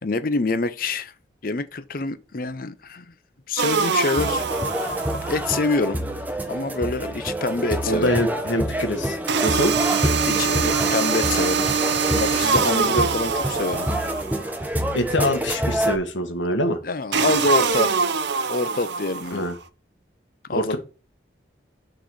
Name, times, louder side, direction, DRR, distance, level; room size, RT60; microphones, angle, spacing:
voice 1, 0.0-1.1 1.4-3.1 3.5-4.5 5.1-6.0 6.5-8.2 10.3-11.7 12.0-13.9 16.8-17.9 18.5-19.5 20.5-20.8, left 3 dB, 50° left, 0.6 m, -26 dB
sound 1, 3.6-5.5 9.3-14.5 17.1-19.5, right 5 dB, 70° right, 0.7 m, -23 dB
sound 2, 4.2-16.0, equal, 10° right, 0.8 m, -27 dB
voice 2, 7.9-9.7 14.9-16.8 19.3-19.5 20.5-20.8, left 1 dB, 85° left, 1.6 m, -24 dB
6.5 x 4.0 x 6.3 m
head